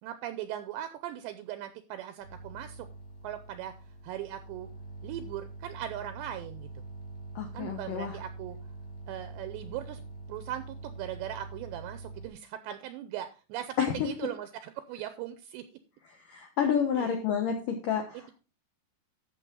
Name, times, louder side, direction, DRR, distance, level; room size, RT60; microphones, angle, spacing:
voice 1, 0.0-2.9 3.2-3.7 4.0-4.7 5.0-6.7 7.5-8.6 9.1-10.0 10.3-15.8 17.0-17.1 18.1-18.3, right 12 dB, 80° right, 10 dB, 2.7 m, -39 dB
sound 1, 2.2-12.3, right 2 dB, 60° left, 4.1 m, -44 dB
voice 2, 7.4-8.2 13.8-14.1 16.3-18.3, left 7 dB, 75° left, 3 dB, 2.0 m, -29 dB
13.5 x 7.0 x 3.8 m, 0.32 s
omnidirectional pair, 5.6 m